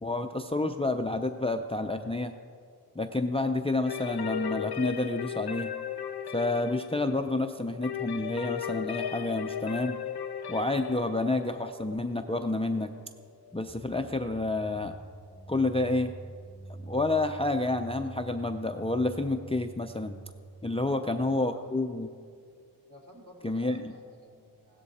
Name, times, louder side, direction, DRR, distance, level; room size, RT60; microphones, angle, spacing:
voice 1, 0.0-2.3 3.0-5.7 6.3-10.0 10.5-12.9 13.5-15.0 15.5-16.1 16.8-20.2 20.6-22.1 23.4-23.8, left 2 dB, 15° left, 7 dB, 0.5 m, -29 dB
sound 1, 3.8-13.5, left 9 dB, 65° left, 0.7 m, -37 dB
sound 2, 13.7-21.4, right 2 dB, 10° right, 1.6 m, -46 dB
voice 2, 20.7-21.7 22.9-24.8, equal, 45° right, -2 dB, 3.3 m, -52 dB
16.0 x 13.0 x 4.2 m, 2.2 s
wide cardioid pair, 65°, 41 cm